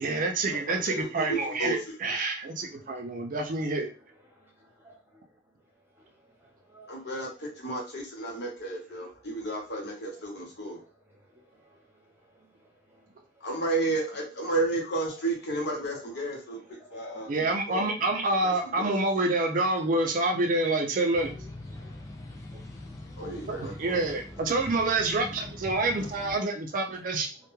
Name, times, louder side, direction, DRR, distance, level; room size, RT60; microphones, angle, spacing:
voice 1, 0.0-3.9 17.3-21.3 23.2-27.3, right 2 dB, 45° right, 4 dB, 0.4 m, -27 dB
voice 2, 0.5-1.8 6.9-10.8 13.4-16.6 16.9-17.8 18.4-18.9 23.2-24.0, right 2 dB, 60° left, -1 dB, 0.9 m, -32 dB
voice 3, 2.5-3.2 4.3-5.3 5.9-7.5 8.3-8.5 9.2-9.6 10.0-13.5 15.1-15.2 16.6-17.4 18.1-18.3 21.7-22.7 23.3-23.8 24.3-24.8 25.9-26.1 26.9-27.2, equal, 10° right, -2 dB, 0.7 m, -59 dB
sound 1, 21.1-26.4, left 1 dB, 15° left, 0.4 m, -42 dB
2.2 x 2.2 x 3.0 m, 0.35 s
head